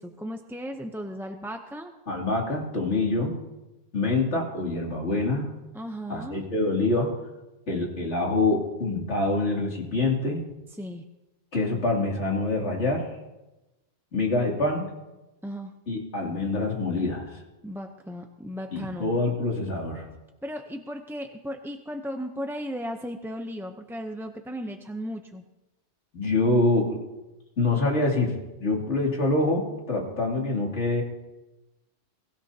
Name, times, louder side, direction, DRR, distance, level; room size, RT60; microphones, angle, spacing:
voice 1, 0.0-1.9 5.7-6.5 10.8-11.0 15.4-15.7 17.6-19.2 20.4-25.4, equal, 5° right, 4 dB, 0.5 m, -36 dB
voice 2, 2.1-3.3 3.9-5.5 6.1-7.1 7.7-10.4 11.5-13.1 14.1-14.9 15.9-17.4 18.7-20.1 26.1-27.0 27.6-28.3 28.6-31.0, left 2 dB, 75° left, -1 dB, 3.0 m, -25 dB
22.5 x 16.0 x 2.8 m, 1.0 s
omnidirectional pair, 1.2 m